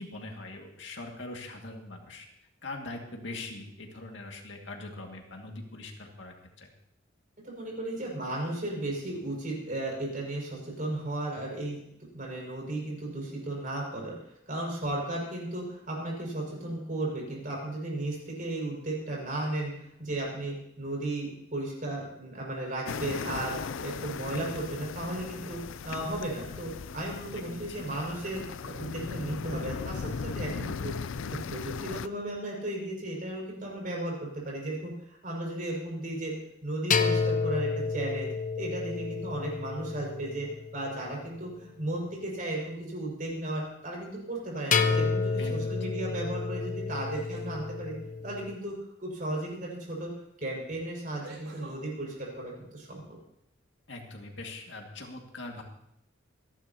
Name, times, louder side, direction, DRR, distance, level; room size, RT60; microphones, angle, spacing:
voice 1, 0.0-2.3 2.6-6.7 27.5-28.2 45.4-46.2 53.9-55.6, left 2 dB, 65° left, 1 dB, 2.2 m, -42 dB
voice 2, 7.4-11.8 12.1-14.1 14.5-30.9 31.3-36.3 36.6-38.3 38.6-47.9 48.2-48.7 49.0-50.1 50.4-53.2, right 1 dB, 45° right, -2 dB, 6.1 m, -35 dB
sound 1, 22.9-32.1, left 5 dB, 90° left, 0.5 m, -37 dB
sound 2, 36.9-41.2 44.7-48.6, left 4 dB, 40° left, 0.8 m, -30 dB
sound 3, 44.3-44.8 46.9-47.5 49.8-49.9 51.2-51.8, right 2 dB, 70° right, 4.6 m, -48 dB
26.5 x 11.5 x 3.0 m, 0.76 s
head